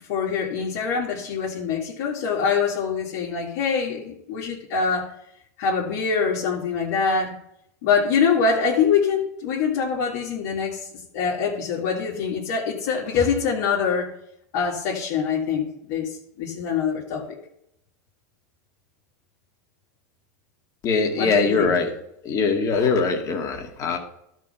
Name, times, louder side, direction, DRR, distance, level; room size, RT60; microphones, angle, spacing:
voice 1, 0.1-5.1 5.6-7.3 7.8-10.9 11.1-14.2 14.5-16.1 16.4-17.4 21.2-21.7, left 6 dB, 65° left, -5 dB, 2.0 m, -24 dB
voice 2, 20.8-21.9 22.2-24.0, left 4 dB, 40° left, 3 dB, 1.9 m, -22 dB
12.5 x 4.4 x 5.6 m, 0.76 s
hypercardioid pair, 110°, 9 cm